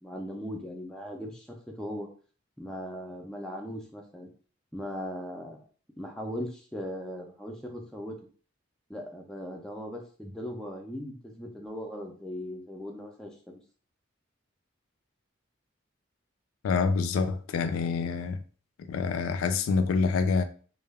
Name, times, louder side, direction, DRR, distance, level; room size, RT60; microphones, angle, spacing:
voice 1, 0.0-2.1 2.6-4.3 4.7-5.6 6.0-8.2 8.9-13.6, equal, 5° left, 0.3 m, -38 dB
voice 2, 16.6-18.4 18.9-20.4, left 5 dB, 90° left, 0.3 m, -26 dB
2.2 x 2.0 x 3.2 m
head